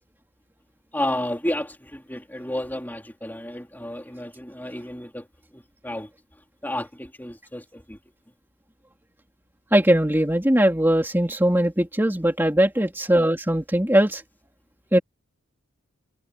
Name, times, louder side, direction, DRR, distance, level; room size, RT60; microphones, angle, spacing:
voice 1, 0.9-5.3 5.5-6.1 6.6-8.0, left 1 dB, 10° left, 3.4 m, -31 dB
voice 2, 9.7-14.2 14.9-15.0, right 1 dB, 10° right, 2.7 m, -20 dB
head